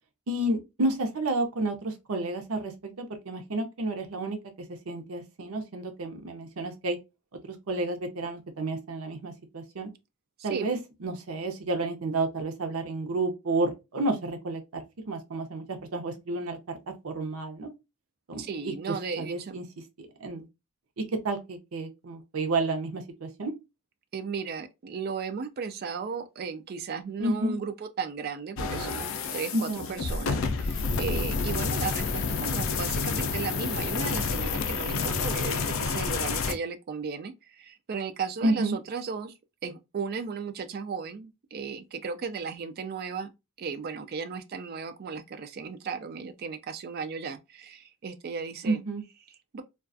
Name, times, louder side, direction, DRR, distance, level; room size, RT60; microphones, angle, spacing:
voice 1, 0.3-4.4 4.9-7.0 7.4-9.9 10.4-16.8 17.0-17.7 18.3-18.7 19.2-19.6 20.0-20.4 21.0-23.5 27.2-27.5 29.5-30.0 38.4-38.8 48.6-49.0, right 2 dB, 85° right, 0.6 m, -31 dB
voice 2, 10.4-10.8 18.4-19.6 24.1-39.3 39.6-43.3 43.6-48.8 49.5-49.6, right 5 dB, 45° right, 0.3 m, -35 dB
sound 1, 28.6-36.5, left 4 dB, 65° left, 0.4 m, -29 dB
2.3 x 2.3 x 2.4 m
head